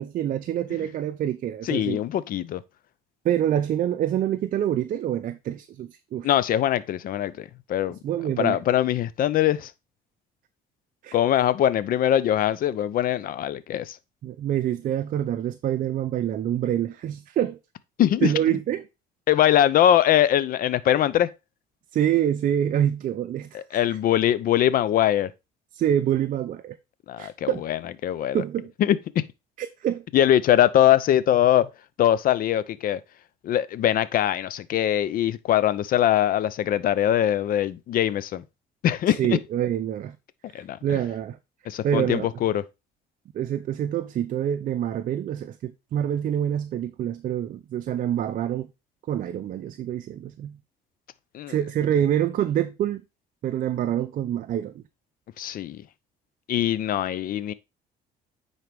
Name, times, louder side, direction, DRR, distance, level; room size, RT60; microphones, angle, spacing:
voice 1, 0.0-2.0 3.2-6.3 8.0-8.6 11.0-11.2 14.2-17.6 18.2-18.8 21.9-23.8 25.7-26.8 27.2-27.6 28.3-28.7 29.6-30.0 39.1-40.2 40.6-41.4 41.8-42.3 43.3-48.7 49.1-50.6 51.5-53.0 53.4-54.8, right 10 dB, 55° right, 0.6 m, -26 dB
voice 2, 1.6-2.6 6.2-8.0 8.4-9.7 11.1-14.0 18.0-18.6 19.3-21.3 23.5-25.3 27.1-28.4 28.8-29.0 30.1-31.7 32.0-33.0 33.4-38.4 38.8-39.4 40.5-41.0 41.7-42.6 51.3-51.6 55.4-55.8 56.5-57.5, left 11 dB, 55° left, 0.6 m, -22 dB
9.3 x 4.1 x 3.4 m
cardioid pair, 110°, 17 cm